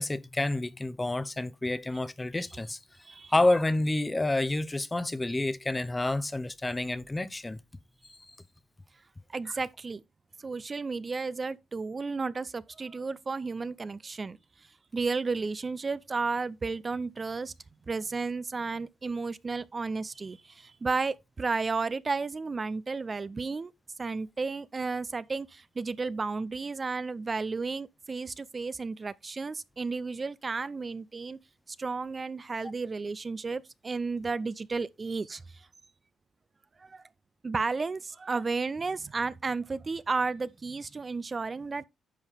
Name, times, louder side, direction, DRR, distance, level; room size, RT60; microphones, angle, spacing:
voice 1, 0.0-2.8 3.3-7.6 8.1-8.2, left 2 dB, 20° left, 0.7 m, -29 dB
voice 2, 9.3-10.0 10.4-14.4 14.9-17.5 17.9-23.7 24.0-31.4 31.7-35.7 36.8-37.0 37.4-41.9, right 4 dB, 35° right, 0.4 m, -33 dB
9.9 x 5.5 x 3.4 m
cardioid pair, 75°, 0 cm